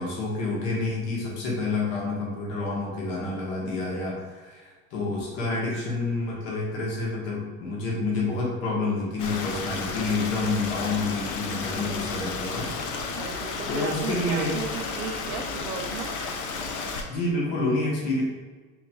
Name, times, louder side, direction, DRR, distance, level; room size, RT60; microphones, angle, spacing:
voice 1, 0.0-12.7 13.7-14.5 17.1-18.2, left 2 dB, 70° left, -4 dB, 1.4 m, -28 dB
Stream, 9.2-17.0, left 4 dB, 45° left, 0.6 m, -32 dB
voice 2, 13.2-16.1, right 7 dB, 85° right, 5 dB, 0.6 m, -35 dB
6.2 x 2.9 x 2.3 m, 1.4 s
supercardioid pair, 105°, 42 cm